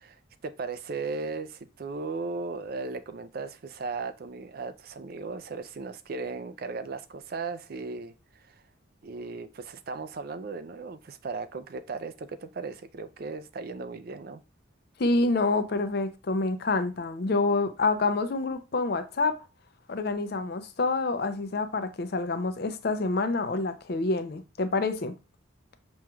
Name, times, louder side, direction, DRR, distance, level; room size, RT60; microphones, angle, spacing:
voice 1, 0.0-8.6 9.0-14.4, right 4 dB, 45° right, 0.4 m, -37 dB
voice 2, 15.0-19.4 19.9-25.1, left 3 dB, 50° left, 0.5 m, -27 dB
6.2 x 3.0 x 2.3 m
head